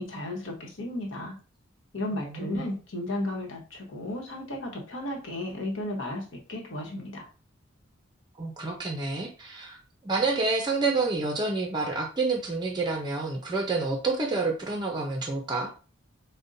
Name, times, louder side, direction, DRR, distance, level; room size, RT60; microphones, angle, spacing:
voice 1, 0.0-1.3 1.9-7.3, left 1 dB, 70° left, 0 dB, 1.0 m, -34 dB
voice 2, 2.2-2.6 8.4-9.8 10.0-15.7, right 3 dB, 20° right, 2 dB, 0.5 m, -28 dB
5.1 x 2.1 x 2.6 m, 0.36 s
head